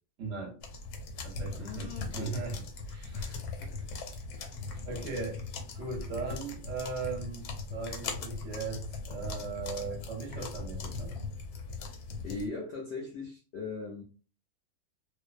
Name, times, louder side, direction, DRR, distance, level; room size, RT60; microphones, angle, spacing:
voice 1, 0.2-0.6 1.2-2.6 2.9-3.4 4.8-5.4 5.7-11.1, right 4 dB, 65° right, 0.9 m, -38 dB
sound 1, 0.6-12.5, left 3 dB, 85° left, 1.1 m, -39 dB
voice 2, 1.5-2.4 3.1-4.3 4.7-5.2 12.2-14.0, left 3 dB, 70° left, 0.6 m, -41 dB
2.5 x 2.0 x 2.4 m
omnidirectional pair, 1.6 m